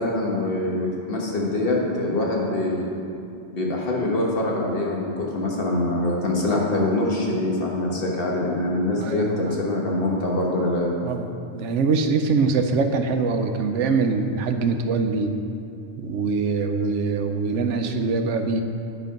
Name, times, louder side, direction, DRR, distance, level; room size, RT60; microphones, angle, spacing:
voice 1, 0.0-2.9 3.5-10.9, left 2 dB, 55° left, -2 dB, 1.4 m, -24 dB
voice 2, 9.0-9.6 11.0-15.3 16.0-18.6, right 4 dB, 90° right, 6 dB, 1.0 m, -23 dB
9.6 x 4.5 x 5.2 m, 2.5 s
omnidirectional pair, 1.2 m